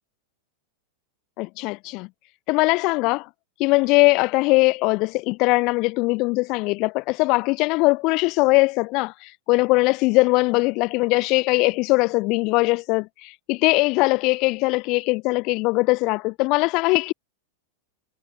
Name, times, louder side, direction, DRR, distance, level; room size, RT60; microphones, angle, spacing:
voice 1, 1.4-2.1 2.5-3.3 3.6-17.1, left 25 dB, 40° left, 5.0 m, -21 dB
figure-of-eight pair, 90°, 0 cm